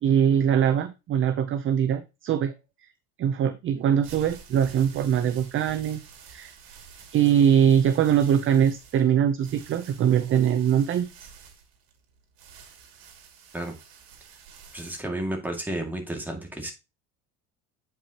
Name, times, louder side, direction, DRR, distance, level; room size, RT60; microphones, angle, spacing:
voice 1, 0.0-2.5 3.2-6.0 6.3-6.5 7.1-11.1, right 9 dB, 35° right, 10 dB, 0.6 m, -22 dB
sound 1, 3.8-15.0, right 6 dB, 70° right, 2.5 m, -49 dB
voice 2, 14.7-16.7, right 1 dB, 5° right, 1 dB, 2.1 m, -32 dB
8.8 x 5.4 x 2.9 m, 0.26 s
cardioid pair, 125°, 37 cm